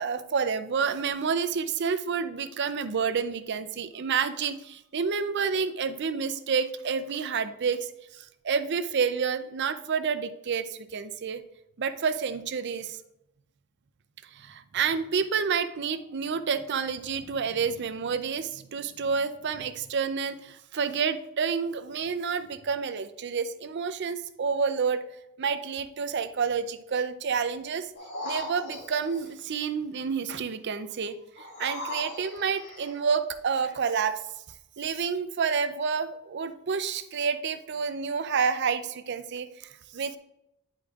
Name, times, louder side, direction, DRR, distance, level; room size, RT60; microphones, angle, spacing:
voice 1, 0.0-7.9 8.2-11.4 11.8-13.0 14.3-25.0 25.4-27.9 28.2-34.2 34.8-40.2, right 6 dB, 50° right, 12 dB, 0.5 m, -29 dB
sound 1, 27.9-29.3 31.4-33.0 33.6-33.7, left 2 dB, 50° left, 2.0 m, -38 dB
9.9 x 5.2 x 2.4 m, 0.83 s
head